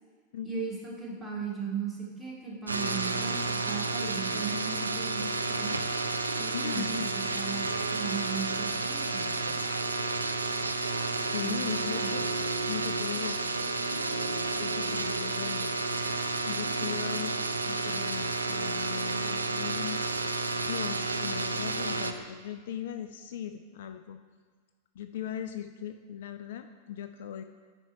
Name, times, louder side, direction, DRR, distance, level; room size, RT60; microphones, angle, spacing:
voice 1, 0.4-5.7 6.4-9.3 11.4-12.1, right 5 dB, 5° right, -5 dB, 2.1 m, -37 dB
sound 1, 2.7-22.1, right 3 dB, 80° right, 0.4 m, -31 dB
voice 2, 6.5-7.1 11.2-12.3 12.7-13.4 14.6-15.7 16.5-17.3 17.7-20.0 20.7-24.2 25.0-27.4, left 9 dB, 55° left, 9 dB, 0.3 m, -38 dB
9.8 x 4.5 x 5.4 m, 1.5 s
figure-of-eight pair, 90°, 0 cm